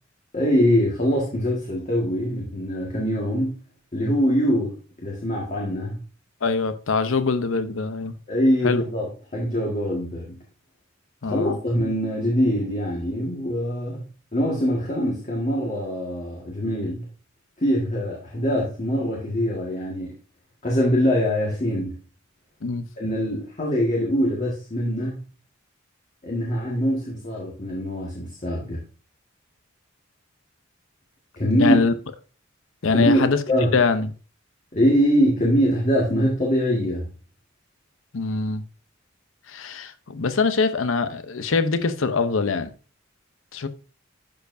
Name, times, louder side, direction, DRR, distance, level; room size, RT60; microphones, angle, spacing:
voice 1, 0.3-3.6 3.9-4.7 5.0-6.0 8.3-9.0 9.3-10.4 11.2-14.0 14.3-17.1 17.6-20.1 20.6-22.0 23.0-25.2 26.2-28.8 31.4-31.8 32.9-33.7 34.7-37.1, equal, 35° left, 1.6 m, -23 dB
voice 2, 6.4-8.1 8.6-8.8 11.2-11.6 22.6-22.9 31.6-31.9 32.8-33.4 33.7-34.1 38.1-38.6 39.5-42.7 43.5-43.7, left 4 dB, 70° left, 0.7 m, -23 dB
11.5 x 4.7 x 2.6 m
head